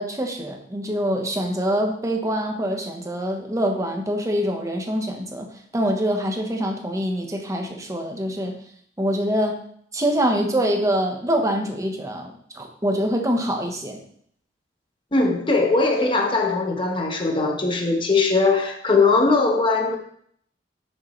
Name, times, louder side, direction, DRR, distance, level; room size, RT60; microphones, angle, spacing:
voice 1, 0.0-5.5 5.7-8.5 9.0-9.6 9.9-14.0, equal, 20° right, 2 dB, 1.1 m, -24 dB
voice 2, 15.1-20.0, left 3 dB, 30° left, 2 dB, 1.1 m, -20 dB
8.2 x 6.6 x 3.2 m, 0.63 s
head